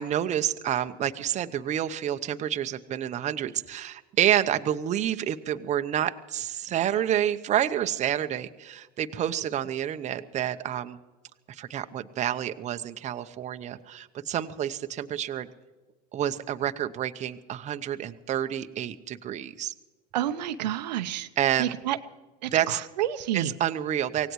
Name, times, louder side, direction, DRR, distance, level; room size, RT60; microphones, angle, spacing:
voice 1, 0.0-11.0 11.5-15.5 16.1-19.7 21.4-21.7 22.5-22.8 23.3-24.3, right 11 dB, 35° right, 9 dB, 0.8 m, -28 dB
voice 2, 20.1-21.3 21.6-22.0 22.4-23.5, right 12 dB, 85° right, 9 dB, 0.8 m, -29 dB
24.5 x 18.0 x 3.2 m, 1.3 s
supercardioid pair, 105°, 21 cm